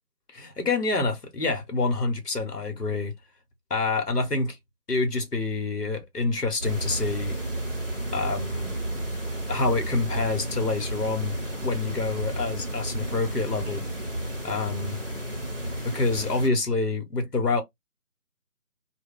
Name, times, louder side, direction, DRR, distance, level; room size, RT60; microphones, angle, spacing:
voice 1, 0.3-3.1 3.7-4.6 4.9-7.4 8.1-8.7 9.5-13.9 14.4-15.0 15.8-17.6, left 3 dB, 90° left, 1.1 m, -27 dB
sound 1, 6.6-16.5, right 1 dB, 40° right, 0.6 m, -32 dB
2.2 x 2.2 x 3.6 m
figure-of-eight pair, 160°, 46 cm